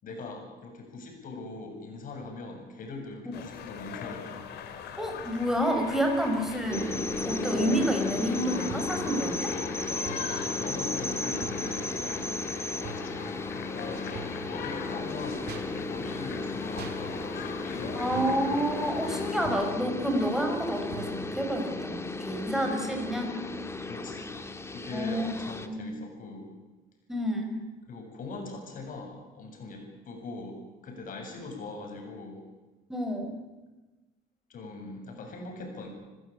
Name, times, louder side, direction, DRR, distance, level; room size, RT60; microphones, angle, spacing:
voice 1, 0.0-4.4 10.3-12.3 13.5-15.6 15.8-18.3 23.9-24.3 24.7-26.5 27.9-32.5 34.5-35.9, left 3 dB, 55° left, 2 dB, 8.0 m, -41 dB
sound 1, 3.3-19.5, left 8 dB, 75° left, 2.8 m, -41 dB
voice 2, 5.0-9.6 17.9-23.4 24.9-25.3 25.7-26.0 27.1-27.6 32.9-33.3, equal, ahead, 3 dB, 5.8 m, -29 dB
sound 2, 6.7-25.7, left 2 dB, 15° left, 2.0 m, -34 dB
sound 3, 8.7-9.1 10.1-10.4 11.4-11.7 12.8-13.2 14.1-14.5 15.5-15.8 16.8-17.1 18.1-18.5 19.4-19.8 20.9-21.3, right 5 dB, 75° right, 3.5 m, -42 dB
28.0 x 15.0 x 8.8 m, 1.2 s
cardioid pair, 110°, 17 cm